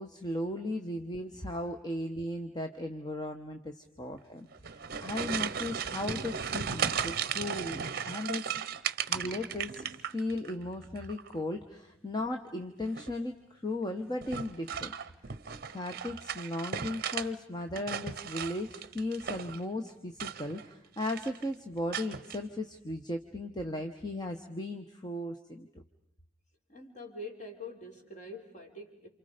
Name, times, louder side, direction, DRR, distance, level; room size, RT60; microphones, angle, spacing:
voice 1, 0.0-8.5 9.1-14.9 15.7-25.7, left 1 dB, 20° left, 5 dB, 1.0 m, -36 dB
sound 1, 4.5-10.5 10.8-11.4 12.8-13.2 14.2-17.3 17.6-19.6 20.1-20.7 21.0-21.4 21.9-22.4, right 7 dB, 45° right, 0.8 m, -36 dB
voice 2, 26.7-29.1, left 2 dB, 35° left, 2 dB, 3.8 m, -45 dB
29.0 x 28.0 x 5.1 m, 0.81 s
head